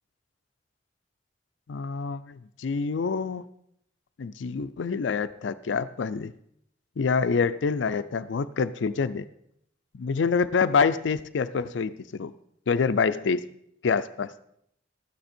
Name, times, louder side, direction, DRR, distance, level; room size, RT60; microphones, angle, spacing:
voice 1, 1.7-3.4 4.2-6.3 7.0-9.3 9.9-12.3 12.7-13.4 13.8-14.3, left 5 dB, 70° left, 13 dB, 0.4 m, -26 dB
13.0 x 9.3 x 4.4 m, 0.73 s
head